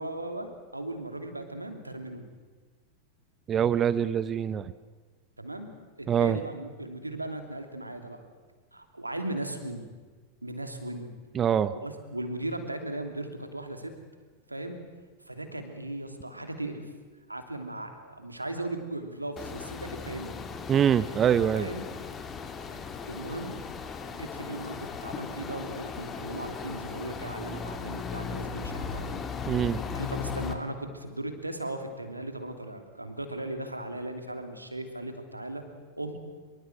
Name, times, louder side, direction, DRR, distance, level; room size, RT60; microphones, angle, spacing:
voice 1, 0.0-2.3 5.4-5.7 6.0-8.2 8.7-9.9 10.4-11.1 11.8-13.9 14.5-14.8 15.3-16.9 17.3-20.4 21.5-21.9 23.1-23.6 24.1-29.2 29.9-35.6 35.9-36.2, right 1 dB, 85° right, 6 dB, 2.9 m, -37 dB
voice 2, 3.5-4.7 6.1-6.4 11.3-11.7 20.7-21.7 29.5-29.8, right 9 dB, 25° right, 15 dB, 0.8 m, -24 dB
sound 1, 19.4-30.5, left 5 dB, 25° left, 2.5 m, -37 dB
25.0 x 24.0 x 8.0 m, 1.4 s
figure-of-eight pair, 90°, 0 cm